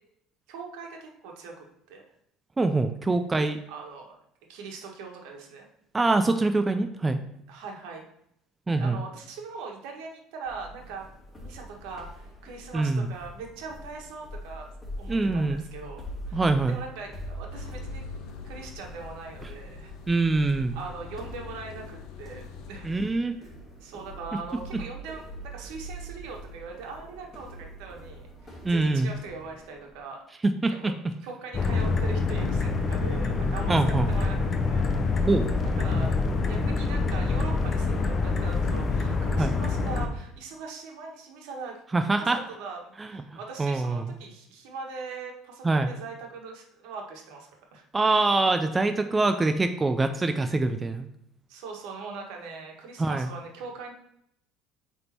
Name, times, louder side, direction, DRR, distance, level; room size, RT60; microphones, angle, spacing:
voice 1, 0.5-2.0 3.7-4.2 4.5-5.7 7.5-8.0 8.8-11.1 11.4-14.7 15.0-18.0 18.4-19.9 20.5-22.9 23.4-23.5 23.8-30.2 30.8-30.9 31.2-35.2 35.6-36.1 36.4-41.8 42.2-47.8 51.5-53.9, right 4 dB, 80° right, 1 dB, 1.4 m, -41 dB
voice 2, 2.6-3.6 5.9-7.2 8.7-9.0 12.7-13.1 15.1-15.6 16.3-16.8 20.1-20.8 22.8-23.4 28.6-29.1 30.4-30.9 33.7-34.1 35.3-35.5 39.4-39.5 41.9-42.4 43.0-43.2 43.6-44.1 45.6-45.9 47.9-51.1 53.0-53.3, right 3 dB, 15° right, 7 dB, 0.4 m, -24 dB
sound 1, 10.5-30.0, right 1 dB, 10° left, 2.4 m, -43 dB
sound 2, 17.5-23.1, left 6 dB, 70° left, 0.9 m, -43 dB
sound 3, 31.5-40.1, left 4 dB, 30° left, 0.7 m, -26 dB
8.2 x 3.5 x 4.4 m, 0.75 s
cardioid pair, 125°, 0 cm